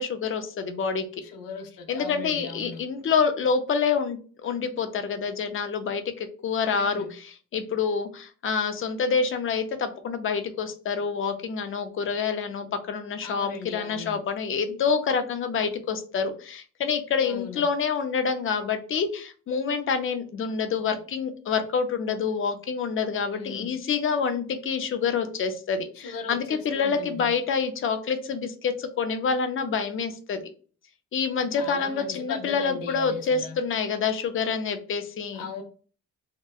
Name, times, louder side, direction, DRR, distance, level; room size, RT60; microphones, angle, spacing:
voice 1, 0.0-1.1 1.9-30.4 31.1-35.5, left 5 dB, 40° left, 8 dB, 0.4 m, -27 dB
voice 2, 1.2-2.8 6.6-7.1 13.2-14.2 17.2-17.6 23.3-23.7 26.0-27.3 31.5-33.6 35.3-35.6, left 5 dB, 90° left, 4 dB, 0.6 m, -38 dB
2.7 x 2.1 x 2.3 m, 0.40 s
cardioid pair, 130°, 33 cm